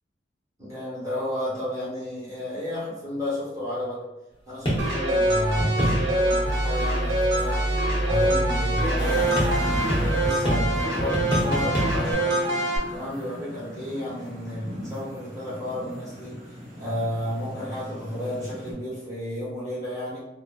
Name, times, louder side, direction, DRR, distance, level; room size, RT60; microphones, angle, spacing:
voice 1, 0.6-4.0 4.5-7.6 8.0-16.4 16.8-20.2, left 1 dB, 20° right, -9 dB, 1.0 m, -32 dB
sound 1, 4.7-12.1, right 1 dB, 25° left, 0.7 m, -26 dB
sound 2, 4.8-12.8, right 1 dB, 75° right, 0.7 m, -26 dB
sound 3, 9.0-18.7, equal, 45° right, 0.9 m, -38 dB
2.8 x 2.4 x 2.2 m, 0.93 s
head